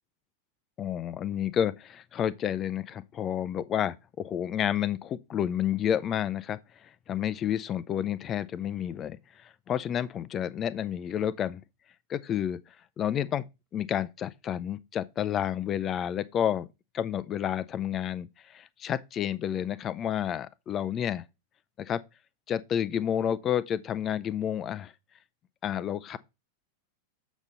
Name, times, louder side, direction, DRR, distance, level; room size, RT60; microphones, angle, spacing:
voice 1, 0.8-11.6 12.1-13.4 13.7-16.7 16.9-21.2 21.8-22.0 22.5-24.9 25.6-26.2, left 9 dB, 30° left, 0.5 m, -30 dB
7.2 x 5.1 x 4.2 m
figure-of-eight pair, 90°, 0 cm